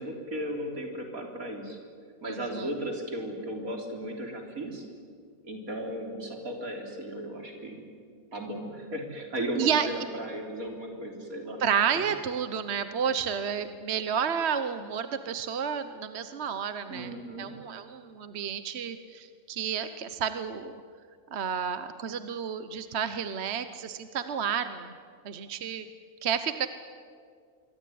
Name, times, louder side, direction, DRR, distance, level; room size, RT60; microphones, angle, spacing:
voice 1, 0.0-1.8 2.2-4.8 5.4-7.9 8.3-11.6 16.9-17.5, right 1 dB, 80° right, 2 dB, 4.2 m, -36 dB
voice 2, 2.2-2.7 9.6-10.0 11.6-20.8 21.3-24.9 25.2-25.9 26.2-26.7, right 7 dB, 55° right, 11 dB, 1.2 m, -31 dB
27.0 x 23.0 x 9.4 m, 2.1 s
omnidirectional pair, 1.5 m